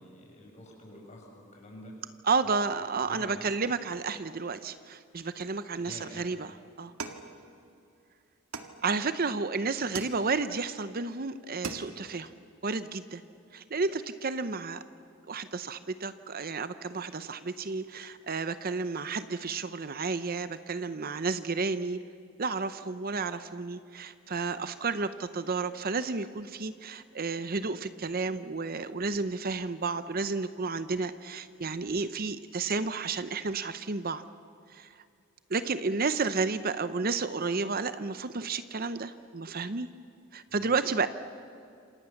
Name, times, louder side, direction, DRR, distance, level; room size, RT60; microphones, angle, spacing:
voice 1, 0.0-2.0 2.4-2.5 3.0-3.5 5.8-6.2 40.5-40.8, left 1 dB, 30° left, 0 dB, 7.0 m, -48 dB
voice 2, 2.2-6.9 8.8-12.3 12.6-13.2 13.5-14.8 15.3-22.0 22.4-34.2 34.7-34.9 35.5-39.9 40.3-41.1, right 4 dB, 45° right, 12 dB, 0.7 m, -31 dB
sound 1, 7.0-7.9 8.5-9.3 9.9-10.6 11.1-11.2 11.5-12.2, right 4 dB, 80° right, 2.0 m, -41 dB
27.5 x 27.0 x 7.1 m, 2.5 s
head